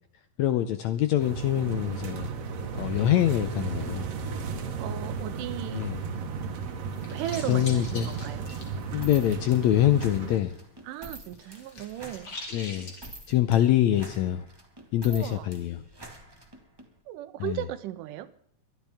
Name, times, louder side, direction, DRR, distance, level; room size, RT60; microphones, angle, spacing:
voice 1, 0.4-2.3 2.7-4.1 5.7-6.0 7.5-8.1 8.9-10.5 12.5-12.9 13.3-14.4 14.9-15.8 17.4-17.6, left 12 dB, 80° left, 10 dB, 1.7 m, -24 dB
sound 1, 1.2-10.4, right 5 dB, 60° right, 2.2 m, -34 dB
voice 2, 4.8-5.9 7.1-8.5 10.8-12.4 15.1-15.5 17.1-18.3, right 13 dB, 80° right, 13 dB, 2.3 m, -36 dB
sound 2, 6.8-10.5 10.7-13.1, left 2 dB, 35° left, 2.9 m, -44 dB
sound 3, 9.0-16.9, right 1 dB, 25° right, 0.5 m, -47 dB
23.0 x 12.0 x 3.5 m, 0.65 s
omnidirectional pair, 3.8 m